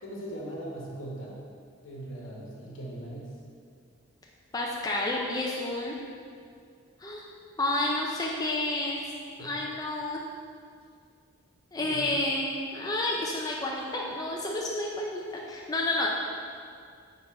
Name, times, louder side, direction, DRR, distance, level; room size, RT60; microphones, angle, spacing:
voice 1, 0.0-1.4 1.8-3.4 9.4-9.6 11.8-12.0, right 1 dB, 70° left, -4 dB, 1.2 m, -40 dB
voice 2, 4.5-5.9 7.0-7.2 7.6-9.0 9.4-10.2 11.7-16.1, left 2 dB, 20° left, -3 dB, 0.4 m, -30 dB
5.4 x 4.2 x 4.3 m, 2.3 s
head